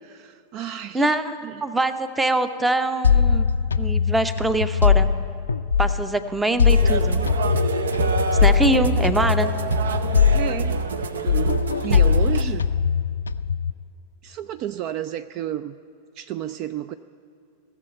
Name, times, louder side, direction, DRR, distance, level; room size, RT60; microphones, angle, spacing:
voice 1, 0.0-1.2 1.4-1.6 10.3-10.8 11.2-12.7 14.2-15.8 16.2-16.9, right 12 dB, 40° right, 13 dB, 0.3 m, -31 dB
voice 2, 0.9-3.4 3.8-5.1 5.8-7.2 8.4-9.5, right 2 dB, 10° right, 12 dB, 0.7 m, -23 dB
sound 1, 3.0-6.1 6.6-11.0 11.3-13.7, left 6 dB, 75° left, 0.3 m, -21 dB
sound 2, 6.6-12.4, right 4 dB, 65° right, 0.7 m, -26 dB
17.0 x 7.1 x 9.1 m, 2.5 s
figure-of-eight pair, 90°, 0 cm